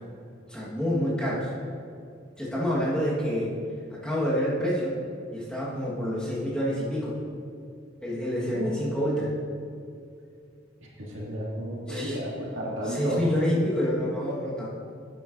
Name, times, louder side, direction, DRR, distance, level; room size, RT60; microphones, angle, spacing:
voice 1, 0.5-1.5 2.4-3.6 3.9-5.0 5.3-7.2 8.0-9.3 11.9-12.2 12.8-14.7, equal, 5° left, -6 dB, 1.4 m, -27 dB
voice 2, 11.1-13.2, equal, 75° right, -4 dB, 2.0 m, -32 dB
10.5 x 9.5 x 2.6 m, 2.4 s
head